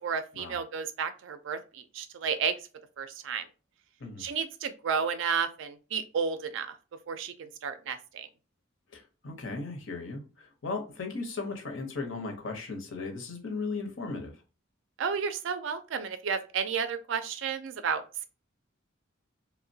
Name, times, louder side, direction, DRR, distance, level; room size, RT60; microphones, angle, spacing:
voice 1, 0.0-2.6 3.0-3.5 4.2-6.8 7.1-8.3 15.0-18.3, right 6 dB, 65° right, 0.3 m, -32 dB
voice 2, 8.9-14.3, left 3 dB, 70° left, 0.7 m, -36 dB
2.8 x 2.1 x 2.6 m
head